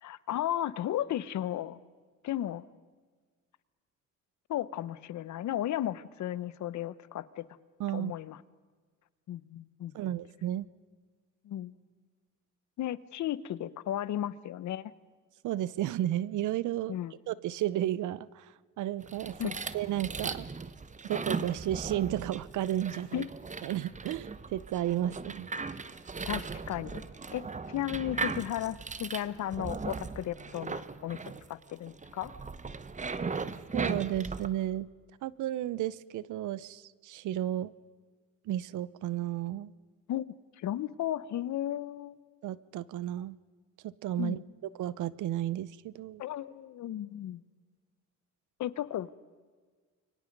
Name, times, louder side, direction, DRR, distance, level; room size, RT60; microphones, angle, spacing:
voice 1, 0.0-1.8 2.2-2.7 4.5-7.5 7.9-8.4 9.3-9.9 11.4-11.7 12.8-14.9 16.9-17.1 19.4-19.6 23.1-23.2 26.2-27.4 27.7-31.2 31.5-32.3 40.1-40.3 40.6-42.2 44.2-44.4 46.2-47.4 48.6-49.1, left 12 dB, 70° left, 17 dB, 0.9 m, -34 dB
voice 2, 7.8-8.1 9.9-10.7 15.4-17.0 17.3-18.5 18.8-19.4 19.7-20.5 21.1-23.2 23.6-25.5 33.7-34.9 35.2-37.7 38.5-39.7 42.4-43.4 43.8-44.4 44.8-46.2, right 13 dB, 80° right, 19 dB, 0.8 m, -33 dB
sound 1, 19.0-34.5, right 4 dB, 25° right, 1.0 m, -38 dB
29.5 x 23.5 x 5.4 m, 1.5 s
cardioid pair, 90°, 30 cm